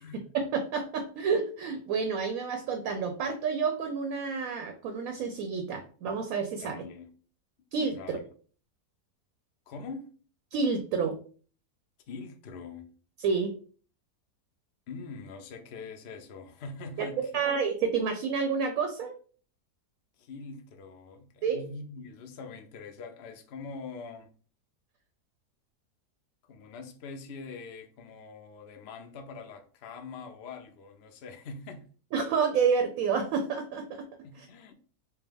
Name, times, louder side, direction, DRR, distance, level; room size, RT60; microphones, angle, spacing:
voice 1, 0.3-6.8 7.7-8.2 10.5-11.2 13.2-13.5 17.0-17.1 17.3-19.1 21.4-21.6 32.1-34.1 34.3-34.5, right 5 dB, 70° right, 0.9 m, -29 dB
voice 2, 6.6-7.1 7.9-8.2 9.7-10.1 12.1-12.9 14.9-17.4 20.2-24.3 26.5-31.9 34.2-34.7, left 4 dB, 65° left, 0.6 m, -43 dB
4.5 x 2.1 x 3.4 m
omnidirectional pair, 1.7 m